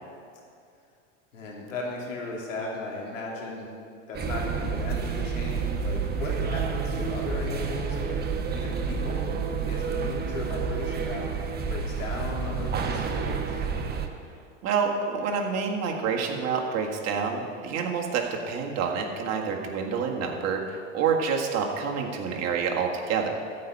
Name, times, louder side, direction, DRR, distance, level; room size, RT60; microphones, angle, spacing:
voice 1, 1.3-3.7 4.1-8.2 8.5-9.4 9.7-11.4 11.7-13.6, left 2 dB, 85° left, -2 dB, 3.2 m, -36 dB
sound 1, 4.1-14.1, right 5 dB, 25° right, 1.1 m, -29 dB
voice 2, 14.6-23.3, right 6 dB, 45° right, 1 dB, 1.8 m, -28 dB
13.5 x 5.5 x 8.7 m, 2.4 s
hypercardioid pair, 115°, 38 cm